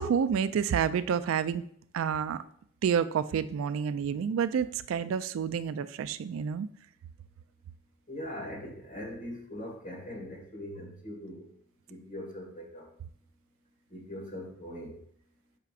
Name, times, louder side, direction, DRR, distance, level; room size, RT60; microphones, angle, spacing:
voice 1, 0.0-1.7 1.9-2.4 2.8-6.7, right 7 dB, 80° right, 14 dB, 0.3 m, -29 dB
voice 2, 8.1-11.5 11.9-12.9 13.9-15.0, left 1 dB, 40° left, -2 dB, 1.7 m, -41 dB
7.0 x 5.6 x 2.4 m, 0.62 s
head